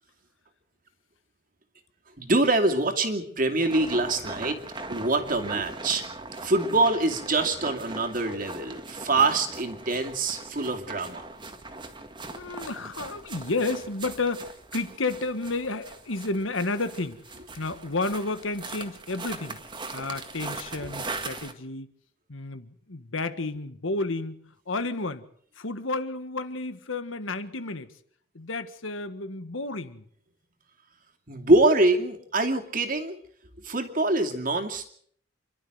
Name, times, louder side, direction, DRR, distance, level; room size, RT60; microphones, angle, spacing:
voice 1, 2.2-4.6 4.9-6.1 6.4-11.2 31.3-33.2 33.6-34.9, right 2 dB, 45° right, 4 dB, 2.6 m, -24 dB
sound 1, 3.6-21.5, right 3 dB, 25° right, 1.8 m, -40 dB
voice 2, 12.3-19.6 19.9-21.9 22.3-24.4 24.7-25.2 25.6-27.9 28.3-30.0, left 3 dB, 80° left, 11 dB, 1.6 m, -31 dB
28.0 x 12.0 x 8.0 m, 0.63 s
head